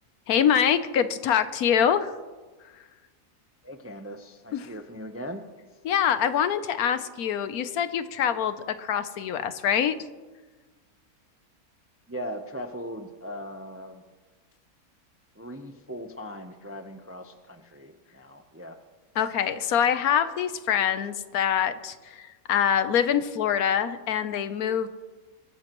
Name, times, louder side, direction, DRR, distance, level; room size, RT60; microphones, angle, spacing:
voice 1, 0.3-2.1 4.5-4.7 5.8-10.0 19.2-24.9, left 8 dB, 75° left, 12 dB, 1.2 m, -25 dB
voice 2, 3.6-5.4 12.1-14.0 15.4-18.8, equal, 15° right, 6 dB, 0.4 m, -39 dB
22.5 x 13.0 x 3.0 m, 1.3 s
omnidirectional pair, 1.6 m